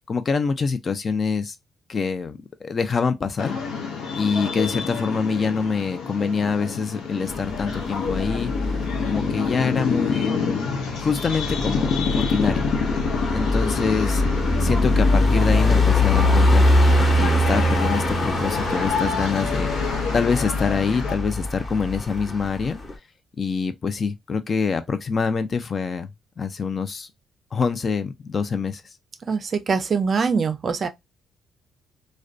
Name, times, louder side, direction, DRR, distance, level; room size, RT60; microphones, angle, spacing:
voice 1, 0.1-1.6 1.9-3.6 4.2-8.7 9.1-10.4 11.0-12.7 13.3-14.2 14.6-22.8 23.4-26.1 26.4-27.1 27.5-28.8, left 5 dB, 40° left, 0.4 m, -25 dB
sound 1, 3.4-21.2, left 5 dB, 85° left, 0.7 m, -28 dB
sound 2, 7.3-9.5 11.2-22.9, left 1 dB, 25° left, 0.9 m, -22 dB
voice 2, 29.3-30.9, right 5 dB, 45° right, 0.4 m, -23 dB
2.5 x 2.1 x 2.4 m
cardioid pair, 90°, 0 cm